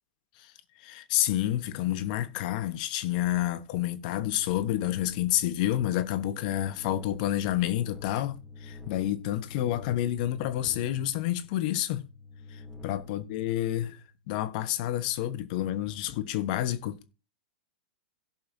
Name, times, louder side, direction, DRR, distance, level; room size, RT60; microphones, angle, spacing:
voice 1, 0.8-8.4 8.6-12.1 12.5-14.0 14.3-17.0, left 13 dB, 55° left, 1.1 m, -29 dB
sound 1, 3.5-14.2, left 4 dB, ahead, 2.7 m, -47 dB
16.5 x 5.6 x 2.7 m
hypercardioid pair, 115°, 5 cm